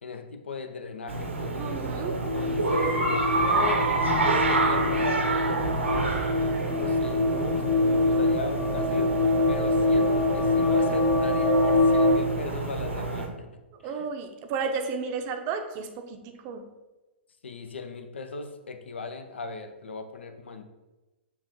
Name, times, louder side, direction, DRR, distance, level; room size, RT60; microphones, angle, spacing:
voice 1, 0.0-1.5 1.9-3.9 4.2-6.1 6.8-9.1 9.5-14.1 17.4-20.6, left 4 dB, 70° left, 8 dB, 0.5 m, -37 dB
sound 1, 1.1-13.3, right 3 dB, 80° right, 0.8 m, -28 dB
voice 2, 1.5-2.1 13.8-16.6, right 5 dB, 35° right, 6 dB, 0.6 m, -33 dB
sound 2, 2.2-12.1, left 2 dB, 30° left, 1.4 m, -25 dB
7.0 x 2.5 x 3.0 m, 1.1 s
figure-of-eight pair, 110°, 6 cm